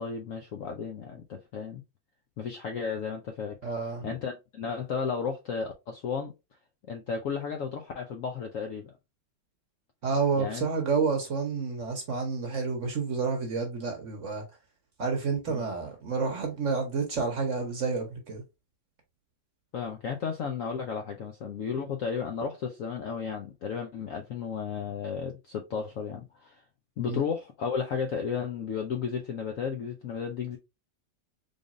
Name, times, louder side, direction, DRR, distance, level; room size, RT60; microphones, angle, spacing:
voice 1, 0.0-1.8 2.4-3.6 4.0-6.3 6.9-8.9 10.3-10.7 15.5-15.6 19.7-26.6 27.0-30.6, left 6 dB, 70° left, 0.8 m, -33 dB
voice 2, 3.6-4.1 10.0-14.4 15.0-18.4 27.1-27.2, right 5 dB, 50° right, 1.0 m, -29 dB
3.8 x 3.5 x 2.5 m
omnidirectional pair, 2.0 m